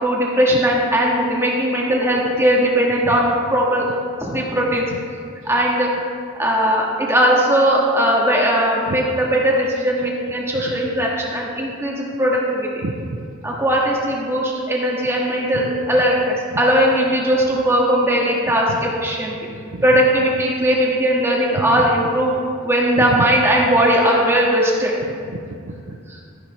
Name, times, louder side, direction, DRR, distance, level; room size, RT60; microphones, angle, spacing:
voice 1, 0.0-3.8 4.2-4.9 5.5-5.9 6.4-12.7 13.4-19.3 19.8-24.9, equal, 15° right, -3 dB, 1.8 m, -18 dB
voice 2, 10.5-10.9 12.8-13.2 13.5-13.6 15.5-15.7 18.7-18.9 19.5-19.8 21.7-21.9 23.0-23.2 25.3-25.4 25.7-26.2, right 2 dB, 65° right, 4 dB, 0.7 m, -30 dB
13.0 x 10.0 x 3.3 m, 2.3 s
head